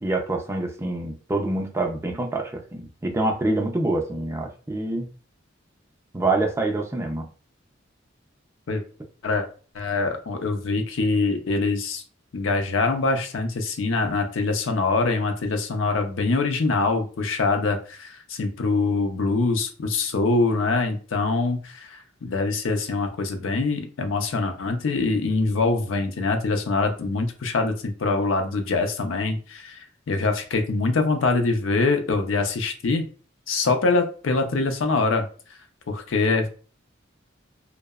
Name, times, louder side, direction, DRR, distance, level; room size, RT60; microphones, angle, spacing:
voice 1, 0.0-5.1 6.1-7.3, right 2 dB, 15° right, 3 dB, 0.3 m, -26 dB
voice 2, 9.7-12.0 12.3-33.1 33.5-35.3 35.9-36.5, left 3 dB, 75° left, 6 dB, 0.4 m, -24 dB
2.6 x 2.0 x 2.3 m, 0.38 s
head